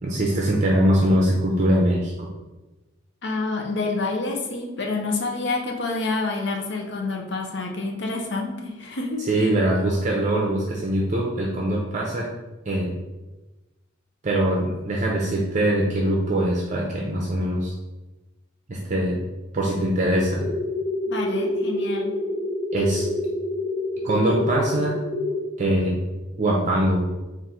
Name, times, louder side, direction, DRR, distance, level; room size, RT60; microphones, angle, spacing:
voice 1, 0.0-2.3 9.3-12.3 12.7-12.9 14.2-17.7 18.7-19.2 19.5-20.4 22.7-23.0 24.0-24.9 25.6-25.9 26.4-27.0, right 1 dB, 35° right, -2 dB, 0.5 m, -22 dB
voice 2, 3.2-9.3 21.1-22.2, left 3 dB, 55° left, 2 dB, 0.7 m, -28 dB
sound 1, 20.4-25.4, left 1 dB, 10° right, 0.9 m, -27 dB
3.8 x 2.5 x 4.2 m, 1.1 s
head